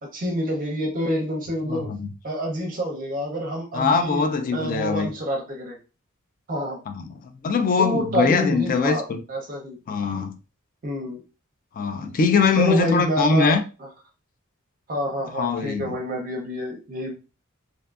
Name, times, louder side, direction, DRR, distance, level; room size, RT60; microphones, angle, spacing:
voice 1, 0.0-1.9 2.2-4.2 4.5-5.8 6.5-6.8 7.8-9.8 10.8-11.2 12.5-13.9 14.9-17.1, equal, 40° right, 0.5 m, -27 dB
voice 2, 1.7-2.1 3.7-5.1 6.9-7.0 7.4-9.2 9.9-10.4 11.8-13.6 15.3-15.9, left 5 dB, 40° left, 0.3 m, -22 dB
2.6 x 2.3 x 2.3 m
head